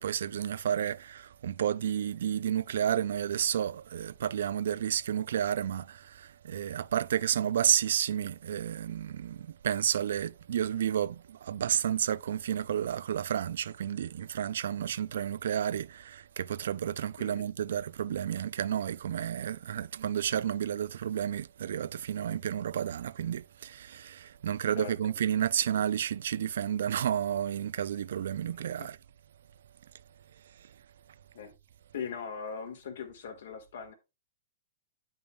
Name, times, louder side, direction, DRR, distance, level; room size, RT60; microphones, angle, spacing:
voice 1, 0.0-29.0, right 9 dB, 65° right, 0.3 m, -31 dB
voice 2, 31.9-33.9, left 6 dB, 65° left, 1.7 m, -40 dB
8.8 x 5.4 x 2.3 m
hypercardioid pair, 170°, 0 cm